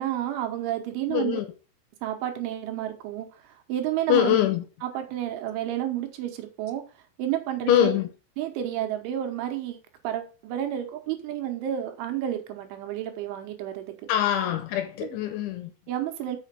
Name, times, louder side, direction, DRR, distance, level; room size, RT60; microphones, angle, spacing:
voice 1, 0.0-1.4 2.0-4.4 4.8-6.8 7.2-7.9 8.4-9.8 10.0-13.8 15.9-16.4, right 11 dB, 80° right, 3.2 m, -30 dB
voice 2, 1.1-1.5 4.1-4.6 7.7-8.1 14.1-15.7, left 11 dB, 80° left, 3.0 m, -23 dB
6.7 x 5.6 x 5.6 m
omnidirectional pair, 5.8 m